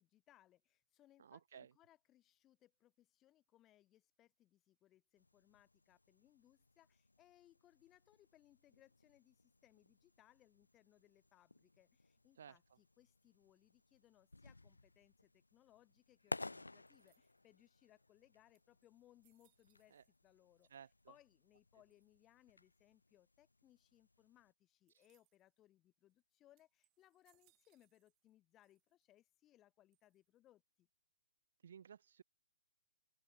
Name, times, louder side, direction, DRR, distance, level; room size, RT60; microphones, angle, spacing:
voice 1, 0.0-20.7 21.1-30.9, left 13 dB, 20° left, 0.4 m, -70 dB
voice 2, 1.2-1.7 12.4-12.6 19.9-20.0 20.7-21.1 31.6-32.2, right 8 dB, 60° right, 0.5 m, -57 dB
sound 1, 5.2-24.5, left 2 dB, 90° left, 0.5 m, -56 dB
sound 2, 16.9-17.6 18.2-18.3 18.5-20.3 20.6-21.2 21.9-22.4 24.9-25.6 26.1-26.2 26.6-28.3 28.6-29.2 29.9-30.5, right 27 dB, 30° right, 3.5 m, -81 dB
open air
figure-of-eight pair, 130°, 0 cm